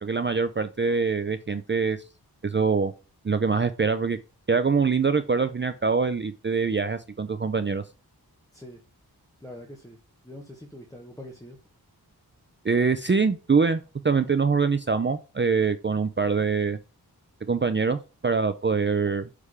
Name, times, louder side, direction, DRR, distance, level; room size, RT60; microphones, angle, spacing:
voice 1, 0.0-2.0 2.4-2.9 3.2-4.2 4.5-7.8 12.6-16.8 17.5-19.3, right 5 dB, 30° right, 10 dB, 0.5 m, -24 dB
voice 2, 9.4-10.0 10.2-11.6, left 1 dB, 10° left, -1 dB, 1.4 m, -43 dB
6.6 x 3.5 x 4.8 m, 0.32 s
wide cardioid pair, 55°, 39 cm